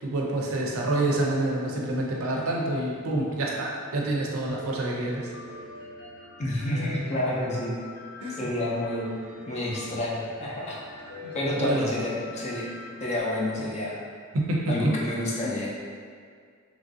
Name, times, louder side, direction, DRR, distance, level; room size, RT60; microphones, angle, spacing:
voice 1, 0.0-5.3 8.2-8.5 11.6-11.9 14.3-14.9 15.4-15.5, right 2 dB, 70° right, -2 dB, 0.5 m, -27 dB
Piano, 4.5-13.2, equal, 75° left, 0.9 m, -42 dB
voice 2, 6.4-7.8 8.3-9.1 9.5-10.8 11.3-12.7 13.0-14.0 14.7-15.9, left 1 dB, 30° left, -4 dB, 0.5 m, -29 dB
3.0 x 2.5 x 2.6 m, 2.1 s
head